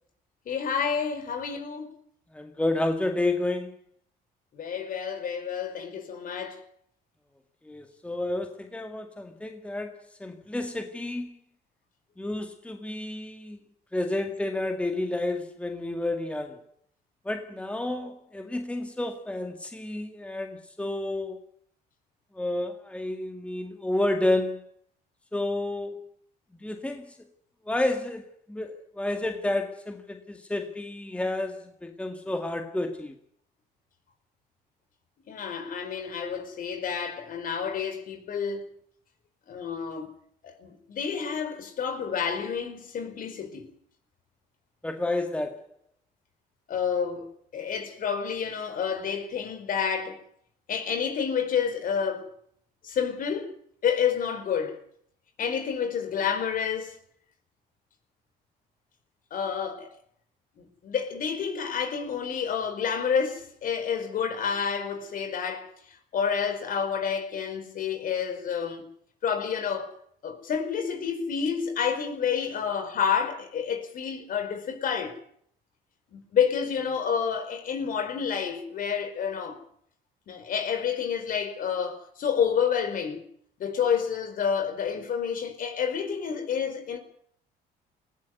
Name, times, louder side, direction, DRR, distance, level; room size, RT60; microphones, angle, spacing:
voice 1, 0.5-1.9 4.5-6.6 35.3-38.7 39.5-40.1 40.4-43.7 46.7-47.3 47.5-50.2 50.7-52.3 52.8-53.5 53.8-54.8 55.4-57.0 59.3-59.9 60.6-65.7 66.1-68.9 69.2-69.9 70.2-75.2 76.1-79.6 80.3-83.2 83.6-87.0, left 7 dB, 55° left, 4.8 m, -29 dB
voice 2, 2.3-3.8 7.6-11.4 12.2-13.6 13.9-16.6 17.2-21.4 22.3-24.7 25.3-26.0 26.5-27.2 27.6-33.2 44.8-45.7, left 2 dB, 5° left, 2.0 m, -30 dB
20.0 x 16.5 x 9.5 m
cardioid pair, 110°, 17 cm